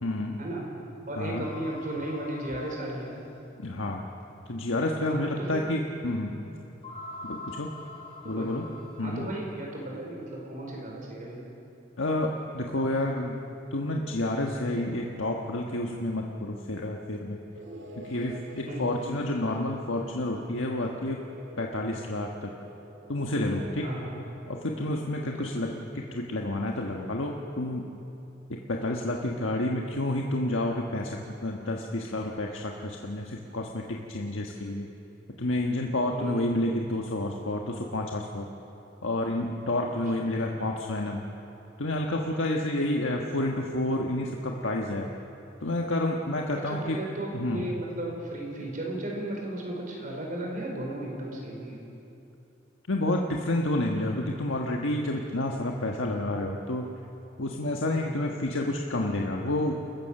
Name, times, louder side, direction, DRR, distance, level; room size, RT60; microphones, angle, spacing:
voice 1, 0.0-0.5 1.2-1.4 3.6-4.1 4.5-6.5 7.2-7.7 8.2-8.7 9.0-9.3 12.0-13.4 13.7-17.4 18.0-21.2 21.6-22.5 23.1-23.9 24.5-27.9 28.7-34.9 35.4-38.5 39.0-41.2 41.8-45.1 45.6-47.0 47.3-47.7 52.9-56.8 57.4-59.8, left 1 dB, 85° left, 0 dB, 1.4 m, -29 dB
voice 2, 1.1-3.1 5.1-5.6 8.2-8.6 9.0-11.4 18.7-18.9 23.8-24.1 25.2-25.5 36.1-36.5 40.2-40.3 46.5-51.8 58.0-58.1, right 1 dB, 40° right, -1 dB, 4.9 m, -35 dB
sound 1, 1.4-3.4 4.2-4.3 4.8-4.9 6.8-9.2, left 2 dB, 30° left, 3.2 m, -44 dB
sound 2, 17.5-25.1, equal, 65° right, 2.3 m, -48 dB
29.0 x 15.0 x 6.7 m, 2.9 s
head